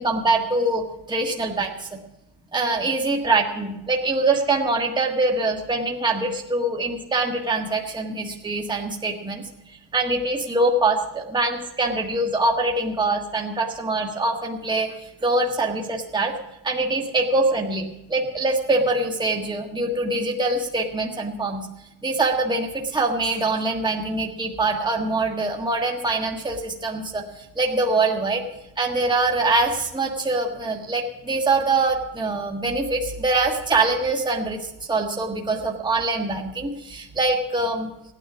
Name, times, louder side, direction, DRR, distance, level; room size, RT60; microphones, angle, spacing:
voice 1, 0.0-1.9 2.5-9.4 9.9-16.3 16.6-21.7 22.0-28.4 28.8-37.9, right 2 dB, 10° right, 1 dB, 1.5 m, -24 dB
17.0 x 9.8 x 6.0 m, 0.87 s
cardioid pair, 130°, 47 cm